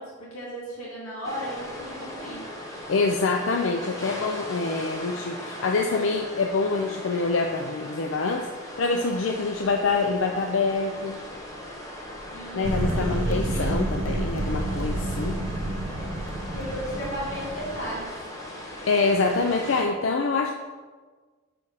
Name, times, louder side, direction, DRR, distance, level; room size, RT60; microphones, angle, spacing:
voice 1, 0.0-2.4 12.3-13.7 16.5-18.1, equal, 85° left, -7 dB, 2.2 m, -35 dB
sound 1, 1.2-19.8, left 1 dB, 15° left, 1.0 m, -38 dB
voice 2, 2.9-11.2 12.5-15.3 18.9-20.5, left 3 dB, 65° left, 3 dB, 0.4 m, -25 dB
sound 2, 12.6-18.0, right 1 dB, 70° right, 0.9 m, -29 dB
6.7 x 4.2 x 4.9 m, 1.4 s
head